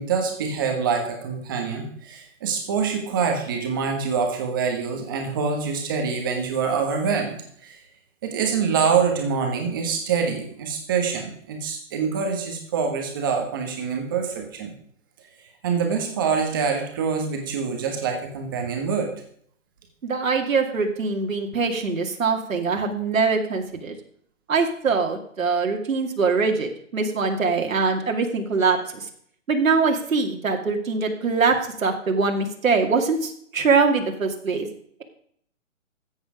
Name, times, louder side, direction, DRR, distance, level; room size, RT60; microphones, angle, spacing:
voice 1, 0.0-7.8 8.2-14.7 15.6-19.1, right 6 dB, 15° right, 3 dB, 1.4 m, -25 dB
voice 2, 20.0-23.9 24.5-29.0 29.5-34.7, right 4 dB, 80° right, 3 dB, 2.3 m, -23 dB
14.0 x 8.1 x 5.0 m, 0.63 s
hypercardioid pair, 175°, 40 cm